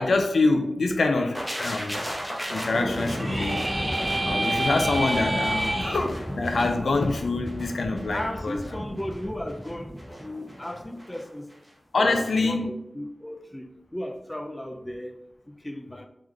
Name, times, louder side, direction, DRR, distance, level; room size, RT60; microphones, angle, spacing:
voice 1, 0.0-3.8 4.2-8.6 11.9-12.7, left 3 dB, 85° left, 0.4 m, -25 dB
sound 1, 1.3-11.2 11.5-11.7, equal, ahead, 0.9 m, -34 dB
sound 2, 3.1-6.0, right 1 dB, 30° right, 0.6 m, -28 dB
voice 2, 8.1-11.5 12.0-15.2 15.5-16.1, left 1 dB, 15° left, 0.4 m, -35 dB
3.6 x 3.5 x 3.2 m
wide cardioid pair, 70°, 0 cm